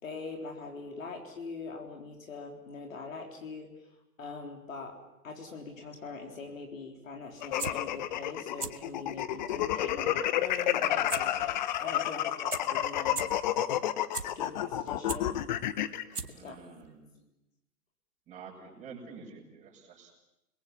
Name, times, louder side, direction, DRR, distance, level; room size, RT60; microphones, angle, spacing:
voice 1, 0.0-3.7 4.2-4.9 5.2-13.3 14.2-15.4 16.3-16.6 17.1-17.2, left 4 dB, 55° left, 2 dB, 3.9 m, -43 dB
sound 1, 7.4-16.0, left 12 dB, 30° left, 0.9 m, -30 dB
sound 2, 7.4-7.7 8.4-8.7 9.1-9.2 11.1-11.2 11.5-11.6 12.2-12.3 12.5-12.6 13.1-13.2 13.8-14.2 14.7-15.2 15.8-15.9 16.1-16.5 16.8-16.9, right 4 dB, 80° right, 1.9 m, -35 dB
voice 2, 16.3-17.1 18.3-20.1, right 5 dB, 15° right, -2 dB, 7.2 m, -48 dB
30.0 x 21.5 x 7.3 m, 0.92 s
figure-of-eight pair, 125°, 46 cm